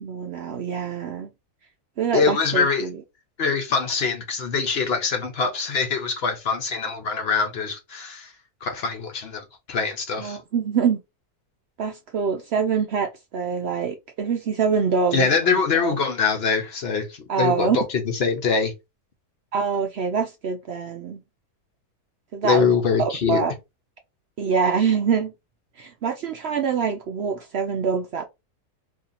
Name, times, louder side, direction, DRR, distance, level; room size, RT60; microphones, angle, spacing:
voice 1, 0.0-1.3 2.0-3.0 10.2-11.0 11.8-16.0 17.3-17.8 19.5-21.2 22.3-22.7 23.0-23.5 24.4-25.3 25.8-28.3, right 6 dB, 85° right, 0.5 m, -25 dB
voice 2, 2.1-2.9 3.4-8.3 8.6-10.4 15.1-18.7 22.4-23.4, left 5 dB, 55° left, 0.7 m, -23 dB
2.8 x 2.8 x 3.7 m
omnidirectional pair, 1.7 m